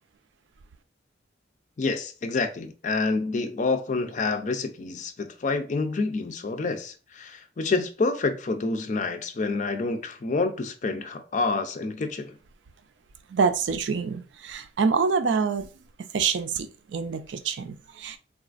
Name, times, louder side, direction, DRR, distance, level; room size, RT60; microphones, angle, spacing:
voice 1, 1.8-12.4, left 3 dB, 40° left, 0.4 m, -28 dB
voice 2, 13.3-15.7 16.1-18.2, right 5 dB, 70° right, 0.4 m, -26 dB
3.8 x 2.4 x 2.4 m
head